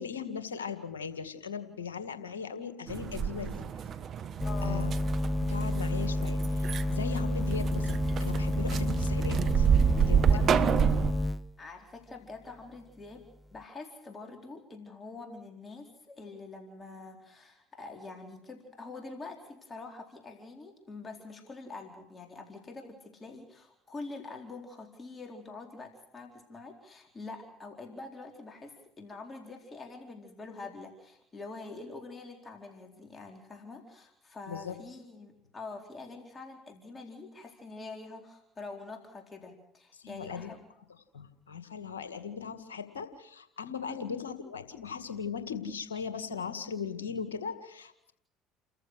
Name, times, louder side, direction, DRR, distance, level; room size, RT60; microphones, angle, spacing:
voice 1, 0.0-3.7 4.6-4.9 5.5-9.7 10.0-10.4 34.5-34.8 39.9-40.5 41.1-48.1, left 6 dB, 85° left, 9 dB, 2.1 m, -38 dB
sound 1, 2.9-11.1, right 8 dB, 45° right, 1.4 m, -29 dB
voice 2, 4.4-5.1 10.3-10.8 11.6-13.3 13.5-40.6 43.9-44.0, left 3 dB, 30° left, 3 dB, 4.3 m, -45 dB
sound 2, 4.4-11.4, left 1 dB, 15° left, 1.2 m, -30 dB
29.5 x 14.5 x 6.5 m, 0.77 s
hypercardioid pair, 65°, 0 cm